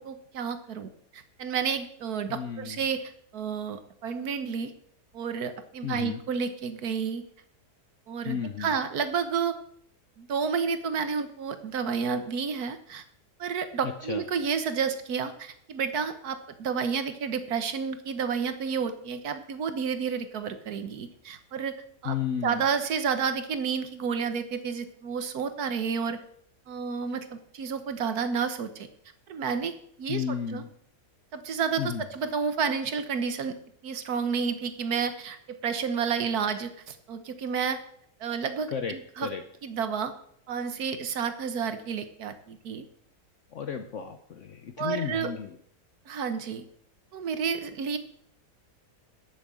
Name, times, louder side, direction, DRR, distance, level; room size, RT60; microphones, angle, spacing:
voice 1, 0.0-4.7 5.1-7.2 8.1-9.6 10.2-13.0 13.4-21.7 22.0-22.1 22.4-26.2 26.7-28.9 29.3-29.7 30.0-30.6 31.3-33.6 33.8-37.8 38.2-39.3 39.6-40.1 40.5-42.8 44.8-45.3 46.1-46.6 47.1-48.0, right 6 dB, 70° right, 10 dB, 1.6 m, -30 dB
voice 2, 2.3-2.8 5.8-6.2 8.2-8.7 13.8-14.2 22.0-22.6 30.1-30.7 31.8-32.0 38.7-39.4 43.5-45.6, left 8 dB, 55° left, 7 dB, 1.0 m, -33 dB
11.0 x 6.9 x 7.5 m, 0.67 s
omnidirectional pair, 1.7 m